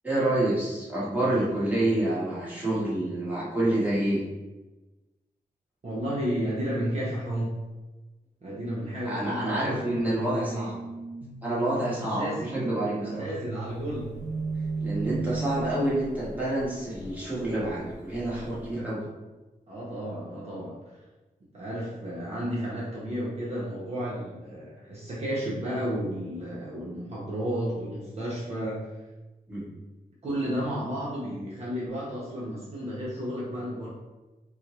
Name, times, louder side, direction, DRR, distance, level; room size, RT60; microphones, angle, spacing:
voice 1, 0.0-4.2 9.0-10.8 11.4-13.3 14.8-19.0 29.5-29.6, right 1 dB, 10° right, -8 dB, 1.3 m, -28 dB
voice 2, 5.8-7.6 8.4-10.7 12.1-12.3 13.0-14.1 19.7-20.9 21.5-28.8 30.2-33.9, equal, 40° right, -7 dB, 0.9 m, -32 dB
sound 1, 10.2-16.2, right 4 dB, 70° right, 0.5 m, -36 dB
sound 2, 13.6-18.7, left 1 dB, 50° left, 1.1 m, -46 dB
4.4 x 2.2 x 3.0 m, 1.1 s
wide cardioid pair, 120°, 16 cm